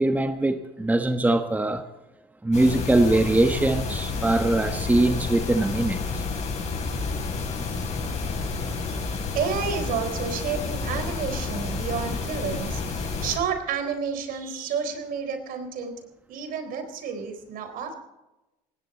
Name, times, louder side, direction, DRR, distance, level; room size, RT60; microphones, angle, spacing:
voice 1, 0.0-1.8 2.4-6.2, right 2 dB, 10° right, 1.2 m, -22 dB
sound 1, 2.5-13.4, left 4 dB, 45° left, 7.5 m, -30 dB
voice 2, 8.9-15.9 16.3-17.9, right 6 dB, 65° right, 3.9 m, -30 dB
19.0 x 17.0 x 4.2 m
supercardioid pair, 90°, 16 cm